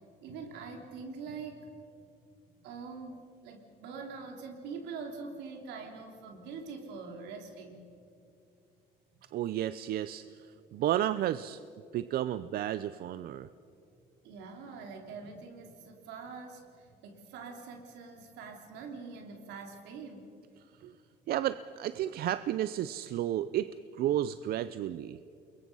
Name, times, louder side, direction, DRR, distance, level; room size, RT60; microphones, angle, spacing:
voice 1, 0.2-1.7 2.6-7.9 9.1-9.2 14.2-20.3, right 4 dB, 90° right, 3 dB, 3.5 m, -44 dB
voice 2, 9.3-10.2 10.7-11.6 11.9-13.5 20.8-20.9 21.3-25.2, right 12 dB, 65° right, 13 dB, 0.6 m, -32 dB
28.0 x 22.0 x 5.6 m, 2.6 s
cardioid pair, 110°, 17 cm